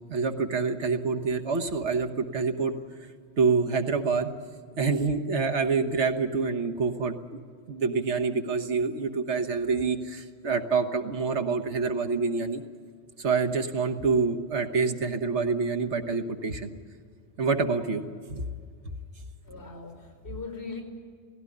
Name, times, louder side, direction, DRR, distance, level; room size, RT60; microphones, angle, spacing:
voice 1, 0.0-2.7 3.4-4.3 4.8-7.2 7.7-12.6 13.2-16.7 17.4-18.4, right 4 dB, 85° right, 5 dB, 1.6 m, -27 dB
voice 2, 19.4-20.8, left 3 dB, 70° left, 4 dB, 4.6 m, -40 dB
18.0 x 16.0 x 9.9 m, 2.1 s
omnidirectional pair, 1.1 m